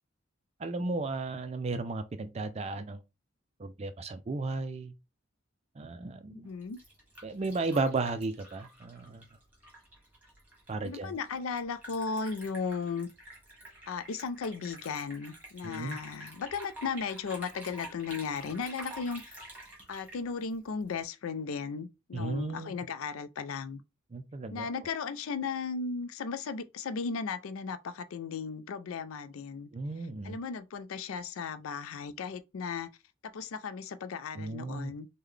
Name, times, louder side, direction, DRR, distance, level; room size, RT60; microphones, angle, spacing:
voice 1, 0.6-3.0 3.6-4.9 5.8-6.5 7.2-9.3 10.7-11.1 15.6-16.0 22.1-22.8 24.1-24.7 29.7-30.4 34.3-34.9, right 3 dB, 30° right, 0.3 m, -34 dB
voice 2, 6.3-6.8 10.8-13.1 13.9-19.3 19.9-23.8 24.5-29.7 30.2-32.9 33.3-35.1, left 5 dB, 85° left, 0.4 m, -36 dB
Liquid, 6.5-21.0, right 1 dB, 10° right, 1.2 m, -49 dB
3.7 x 2.1 x 3.2 m
head